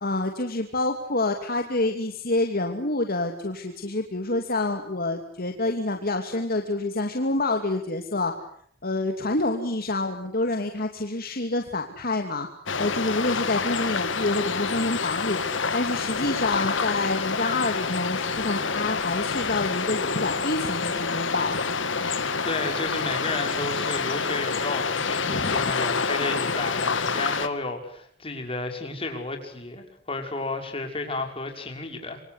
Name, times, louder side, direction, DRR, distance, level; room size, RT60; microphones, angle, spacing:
voice 1, 0.0-8.3 8.8-12.5 12.8-15.4 15.7-21.6 25.2-25.7, left 2 dB, 50° left, 4 dB, 2.7 m, -27 dB
sound 1, 12.7-27.5, left 5 dB, 70° left, 2.1 m, -27 dB
voice 2, 22.4-32.2, left 2 dB, 30° left, 4 dB, 6.1 m, -32 dB
27.0 x 25.5 x 8.1 m, 0.65 s
head